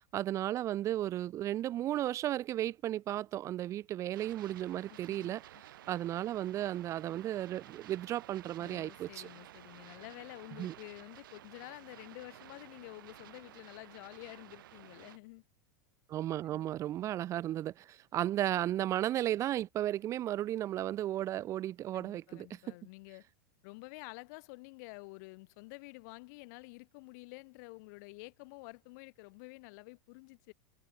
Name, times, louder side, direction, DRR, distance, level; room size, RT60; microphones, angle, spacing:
voice 1, 0.0-9.3 10.6-10.7 16.1-22.6, right 13 dB, 30° right, 0.4 m, -34 dB
sound 1, 4.1-15.2, right 13 dB, 85° right, 2.8 m, -54 dB
voice 2, 4.9-5.3 8.6-15.4 16.4-16.7 21.9-23.2 23.6-30.5, left 28 dB, 60° left, 7.2 m, -50 dB
supercardioid pair, 135°, 11 cm